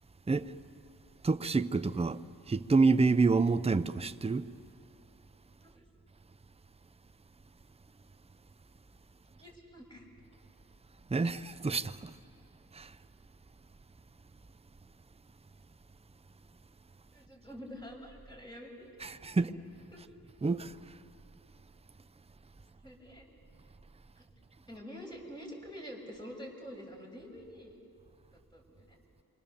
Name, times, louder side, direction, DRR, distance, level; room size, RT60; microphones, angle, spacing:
voice 1, 1.2-2.2 2.5-4.5 11.1-12.1 12.7-12.9 19.0-19.5 20.4-20.7, right 4 dB, 15° right, 0.7 m, -28 dB
voice 2, 9.4-10.0 17.1-18.9 19.3-19.5 19.9-20.1 22.8-23.3 24.1-24.2 24.7-27.8 28.3-29.0, equal, 10° left, 6.5 m, -47 dB
27.5 x 23.5 x 7.2 m
cardioid pair, 70°, 38 cm